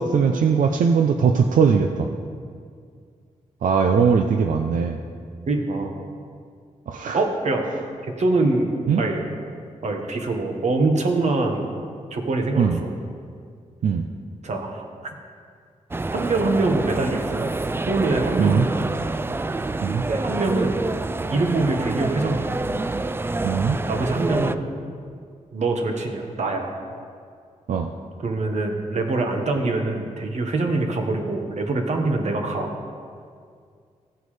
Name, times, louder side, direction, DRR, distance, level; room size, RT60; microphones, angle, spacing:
voice 1, 0.0-2.1 3.6-5.0 6.9-7.2 8.9-9.0 12.6-12.8 13.8-14.1 18.4-18.7 19.8-20.0 23.4-23.8 27.7-27.9, right 6 dB, 85° right, 4 dB, 0.6 m, -20 dB
voice 2, 5.5-5.9 7.1-7.7 8.2-8.7 9.0-9.2 9.8-11.7 12.1-12.9 14.4-14.8 16.1-17.5 17.9-18.9 20.1-20.8 21.3-22.5 23.9-24.6 25.5-26.7 28.2-32.7, right 2 dB, 60° right, 3 dB, 1.4 m, -24 dB
sound 1, 15.9-24.6, right 2 dB, 15° right, 0.3 m, -27 dB
16.0 x 9.3 x 3.3 m, 2.2 s
wide cardioid pair, 105°, 13 cm